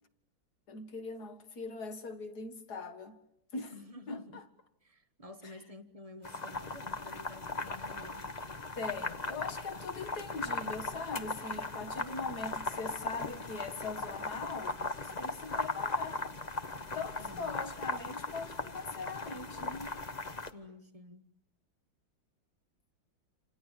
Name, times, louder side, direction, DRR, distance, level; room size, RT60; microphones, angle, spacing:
voice 1, 0.7-3.2 3.5-3.7 4.1-4.4 5.4-5.6 8.7-14.8 15.0-16.2 16.9-20.0, left 4 dB, 50° left, 2.3 m, -41 dB
voice 2, 3.7-4.4 4.8-8.4 17.2-17.6 20.4-21.3, left 2 dB, 20° right, 1.3 m, -50 dB
sound 1, 6.2-20.5, left 3 dB, 25° left, 0.9 m, -38 dB
28.5 x 27.5 x 7.5 m
omnidirectional pair, 2.3 m